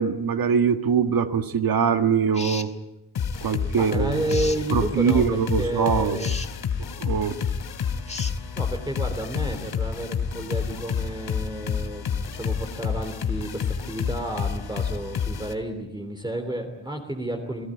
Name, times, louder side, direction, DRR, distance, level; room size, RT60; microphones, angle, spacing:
voice 1, 0.0-2.7 3.4-4.4 4.7-6.2 7.0-7.4, right 7 dB, 50° right, 7 dB, 1.8 m, -23 dB
sound 1, 2.3-2.7 4.3-4.6 6.2-6.5 8.1-8.4, left 3 dB, 15° left, 1.7 m, -35 dB
sound 2, 3.2-15.5, left 7 dB, 60° left, 2.9 m, -29 dB
voice 2, 3.3-6.3 8.6-17.6, right 1 dB, 10° right, 3 dB, 3.3 m, -31 dB
29.0 x 18.0 x 9.0 m, 0.91 s
cardioid pair, 110°, 44 cm